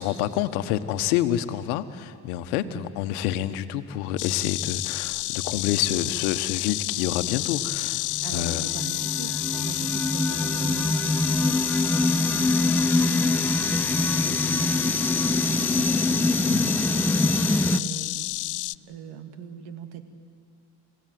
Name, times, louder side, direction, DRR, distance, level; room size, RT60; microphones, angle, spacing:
voice 1, 0.0-8.0 8.3-8.7 16.5-16.7, left 12 dB, 85° left, 10 dB, 1.3 m, -28 dB
voice 2, 2.6-2.9 8.2-11.0 11.4-11.7 12.1-16.3 16.7-20.0, right 8 dB, 75° right, 8 dB, 2.3 m, -41 dB
Insect, 4.2-18.8, left 18 dB, 45° left, 0.5 m, -30 dB
sound 1, 8.0-17.8, left 2 dB, 5° left, 0.7 m, -24 dB
29.0 x 16.5 x 9.4 m, 2.6 s
supercardioid pair, 85°, 43 cm